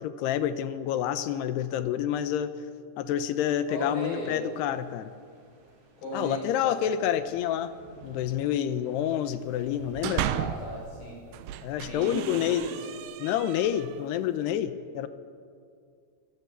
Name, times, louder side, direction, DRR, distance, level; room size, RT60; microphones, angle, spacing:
voice 1, 0.0-2.5 3.0-5.1 6.1-7.7 8.0-10.2 11.6-12.7 13.2-15.1, left 10 dB, 75° left, 12 dB, 2.6 m, -28 dB
voice 2, 3.7-4.3 6.0-6.9 10.2-11.2 11.8-12.8, equal, 50° left, -2 dB, 8.3 m, -36 dB
sound 1, 4.1-10.9, right 4 dB, 55° right, 5.7 m, -56 dB
sound 2, 9.7-10.8 11.3-14.1, right 12 dB, 85° right, 2.3 m, -35 dB
24.5 x 17.5 x 8.2 m, 2.2 s
omnidirectional pair, 5.4 m